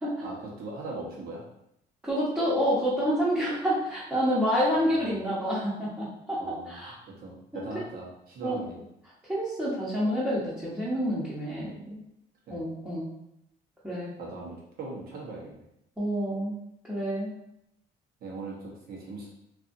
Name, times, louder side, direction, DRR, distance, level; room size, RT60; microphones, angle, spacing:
voice 1, 0.2-1.4 4.7-5.0 6.4-8.8 12.5-12.7 14.2-15.6 18.2-19.3, right 2 dB, 65° right, -3 dB, 1.0 m, -40 dB
voice 2, 2.0-6.9 7.7-7.8 8.4-8.5 9.3-12.0 12.5-13.1 13.8-14.1 16.0-16.6 16.9-17.3, equal, 10° right, -9 dB, 0.8 m, -28 dB
2.7 x 2.5 x 2.5 m, 0.80 s
cardioid pair, 110°, 17 cm